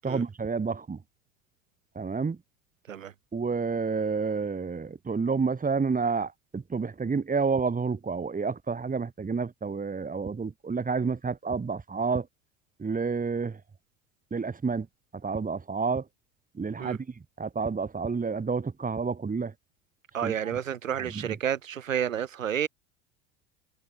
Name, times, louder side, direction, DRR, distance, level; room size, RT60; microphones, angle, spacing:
voice 1, 0.0-1.0 1.9-2.4 3.3-12.3 12.8-13.6 14.3-14.9 15.2-16.0 16.5-17.1 17.4-19.5 20.2-20.3 21.1-21.3, right 5 dB, 20° right, 6.2 m, -29 dB
voice 2, 20.1-22.7, right 9 dB, 80° right, 3.1 m, -30 dB
figure-of-eight pair, 70°, 38 cm